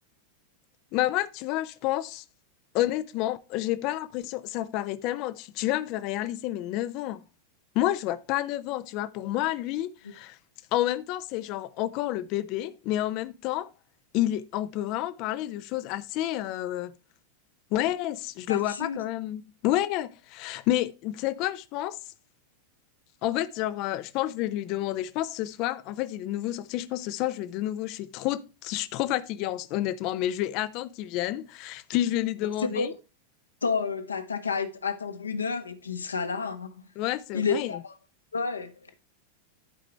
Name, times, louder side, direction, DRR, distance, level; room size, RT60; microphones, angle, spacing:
voice 1, 0.9-2.2 2.7-7.2 7.7-10.4 10.7-13.7 14.1-16.9 17.7-22.0 23.2-32.9 37.0-37.7, left 14 dB, 40° left, 0.7 m, -29 dB
voice 2, 18.5-19.0 32.6-32.9 33.6-36.8 37.3-37.9 38.3-38.7, left 5 dB, 75° left, 1.2 m, -30 dB
11.5 x 5.2 x 4.5 m
figure-of-eight pair, 90°, 0 cm